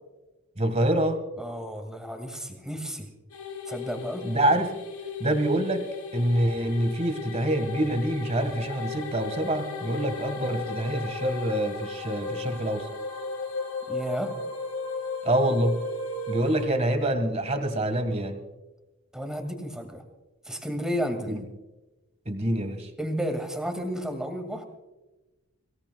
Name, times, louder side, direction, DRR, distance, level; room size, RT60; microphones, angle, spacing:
voice 1, 0.6-1.2 4.2-4.7 5.2-12.9 15.2-15.8 16.3-18.4 21.3-21.4 22.2-22.9, right 1 dB, 30° right, 8 dB, 1.5 m, -26 dB
voice 2, 1.4-3.1 3.7-4.3 13.9-14.3 19.1-20.0 20.4-21.4 23.0-24.6, equal, 5° right, 4 dB, 2.0 m, -32 dB
sound 1, 3.3-16.6, left 3 dB, 80° left, 3.5 m, -35 dB
24.5 x 17.0 x 2.3 m, 1.1 s
head